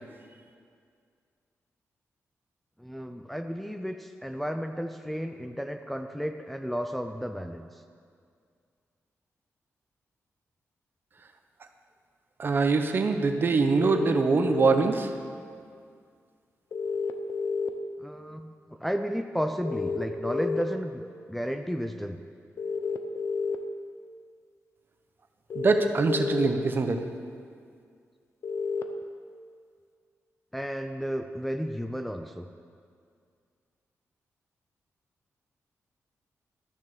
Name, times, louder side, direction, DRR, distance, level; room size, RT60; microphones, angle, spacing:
voice 1, 2.8-7.7 18.0-22.2 30.5-32.5, equal, ahead, 6 dB, 0.4 m, -33 dB
voice 2, 12.4-15.1 25.5-27.0, right 4 dB, 40° right, 6 dB, 0.8 m, -24 dB
sound 1, 13.8-14.8 16.7-17.7 19.6-20.6 22.6-23.6 25.5-26.5 28.4-28.8, left 5 dB, 60° left, 0.7 m, -30 dB
12.5 x 6.6 x 6.9 m, 2.2 s
wide cardioid pair, 135°, 5 cm